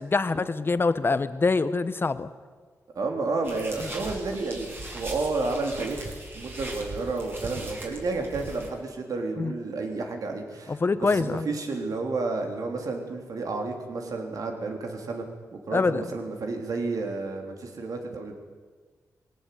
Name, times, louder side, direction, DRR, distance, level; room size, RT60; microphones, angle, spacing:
voice 1, 0.0-2.3 3.8-3.9 9.4-9.6 10.7-11.5 15.7-16.0, left 3 dB, 35° left, 13 dB, 1.2 m, -25 dB
voice 2, 3.0-15.3 15.5-18.3, right 3 dB, 70° right, 3 dB, 3.6 m, -31 dB
sound 1, 3.4-8.7, right 1 dB, 35° right, 6.3 m, -39 dB
21.0 x 17.5 x 8.5 m, 1.5 s
cardioid pair, 80°, 6 cm